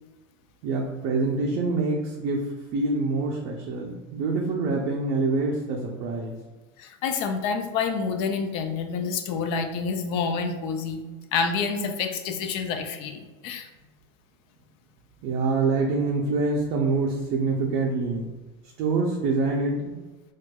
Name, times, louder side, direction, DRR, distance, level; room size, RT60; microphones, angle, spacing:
voice 1, 0.6-6.3 15.2-18.3 18.8-19.9, right 3 dB, 50° right, -2 dB, 0.4 m, -26 dB
voice 2, 6.8-11.0 11.3-13.7, left 5 dB, 50° left, 7 dB, 0.4 m, -28 dB
4.3 x 2.3 x 2.2 m, 1.2 s
supercardioid pair, 150°, 12 cm